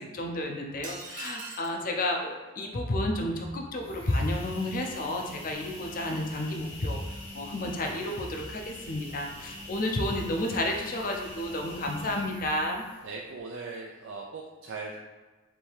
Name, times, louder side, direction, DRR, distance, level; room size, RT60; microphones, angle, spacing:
voice 1, 0.0-12.8, left 1 dB, 45° left, 2 dB, 0.5 m, -31 dB
sound 1, 0.8-1.8, right 4 dB, 45° right, 0.8 m, -41 dB
sound 2, 3.8-13.2, left 1 dB, 70° left, 1.3 m, -44 dB
voice 2, 13.0-15.0, right 3 dB, 75° right, -1 dB, 0.4 m, -39 dB
3.5 x 2.7 x 4.5 m, 1.3 s
head